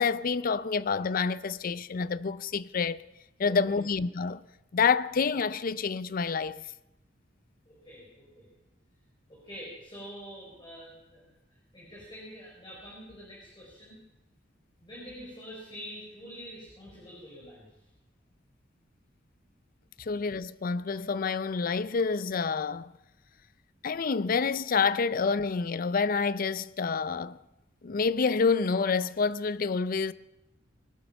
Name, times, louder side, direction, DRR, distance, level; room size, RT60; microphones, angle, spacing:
voice 1, 0.0-3.0 3.4-4.4 4.7-6.6 20.0-22.9 23.8-27.4 27.8-30.1, left 5 dB, 50° left, 0.5 m, -28 dB
voice 2, 3.4-3.8 7.7-8.5 9.3-11.2 11.7-14.0 14.8-17.7, equal, 25° left, 4.6 m, -46 dB
20.5 x 12.5 x 5.4 m
head